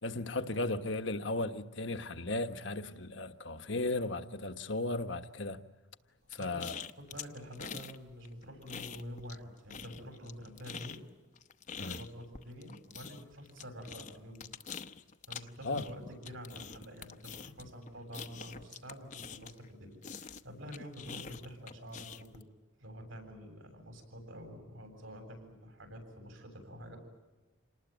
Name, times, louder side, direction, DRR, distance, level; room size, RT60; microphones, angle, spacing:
voice 1, 0.0-5.6 6.4-6.7 11.8-12.0 15.6-15.8, left 2 dB, 65° left, 1.4 m, -35 dB
sound 1, 6.3-8.0 8.2-9.4 9.7-19.7 20.0-22.4, left 6 dB, 40° left, 0.9 m, -45 dB
voice 2, 6.3-6.7 7.0-11.0 11.8-14.5 15.3-22.4 22.8-27.0, equal, 75° right, 7.9 m, -48 dB
28.0 x 19.5 x 9.2 m
head